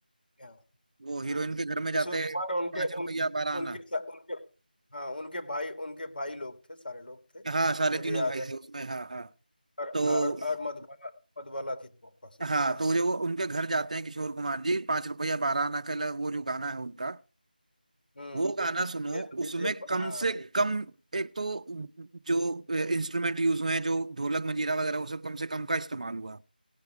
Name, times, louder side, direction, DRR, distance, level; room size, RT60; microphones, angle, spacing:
voice 1, 1.0-2.4 2.7-3.8 7.4-9.3 9.9-10.4 12.4-17.2 18.3-26.4, right 3 dB, 45° right, 0.7 m, -30 dB
voice 2, 1.9-3.1 3.5-4.4 4.9-7.4 7.9-8.5 9.8-12.4 12.6-12.8 18.2-18.5 19.0-19.7 20.0-20.2, left 1 dB, 65° left, 2.3 m, -36 dB
18.5 x 6.7 x 4.6 m
figure-of-eight pair, 170°, 5 cm